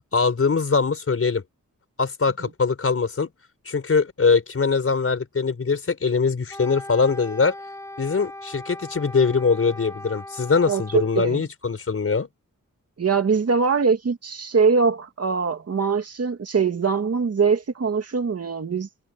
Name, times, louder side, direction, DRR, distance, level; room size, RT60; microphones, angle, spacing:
voice 1, 0.1-1.4 2.0-3.3 3.6-7.5 8.0-12.3, left 5 dB, 45° left, 5.0 m, -22 dB
Wind instrument woodwind instrument, 6.5-11.3, left 1 dB, 10° left, 7.1 m, -39 dB
voice 2, 10.7-11.4 13.0-18.9, right 5 dB, 50° right, 2.2 m, -22 dB
wide cardioid pair, 170°, 31 cm